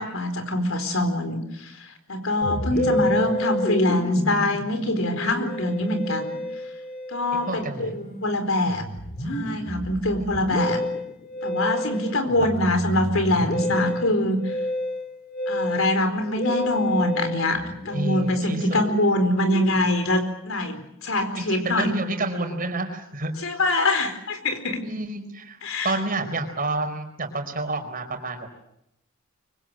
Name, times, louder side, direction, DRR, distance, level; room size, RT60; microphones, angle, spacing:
voice 1, 0.0-6.4 7.1-8.9 9.2-10.8 11.4-14.5 15.5-21.9 23.4-24.8 25.6-26.0, left 1 dB, 70° left, 8 dB, 4.4 m, -24 dB
Musical instrument, 2.4-20.0, left 1 dB, 45° left, 2.9 m, -30 dB
voice 2, 2.7-3.1 7.4-7.9 10.2-10.3 12.4-12.5 17.9-18.8 21.4-23.3 24.8-25.6 25.8-28.5, right 2 dB, 40° right, 5 dB, 4.6 m, -29 dB
25.0 x 24.5 x 7.8 m, 0.79 s
head